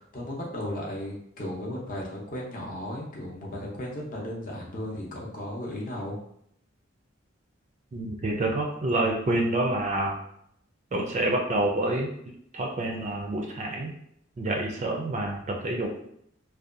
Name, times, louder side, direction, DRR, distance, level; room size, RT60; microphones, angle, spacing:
voice 1, 0.0-6.2, left 1 dB, 40° left, -3 dB, 0.6 m, -35 dB
voice 2, 7.9-10.2 10.9-12.1 12.5-13.9 14.4-15.9, right 1 dB, 35° right, 1 dB, 0.4 m, -27 dB
2.7 x 2.2 x 2.4 m, 0.71 s
head